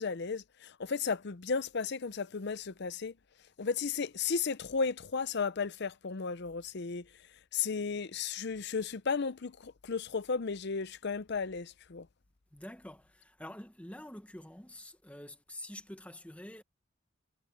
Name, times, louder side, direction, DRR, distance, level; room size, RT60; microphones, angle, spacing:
voice 1, 0.0-3.1 3.6-7.1 7.5-12.1, left 5 dB, 55° left, 0.6 m, -34 dB
voice 2, 12.5-16.6, left 1 dB, 5° left, 1.2 m, -47 dB
head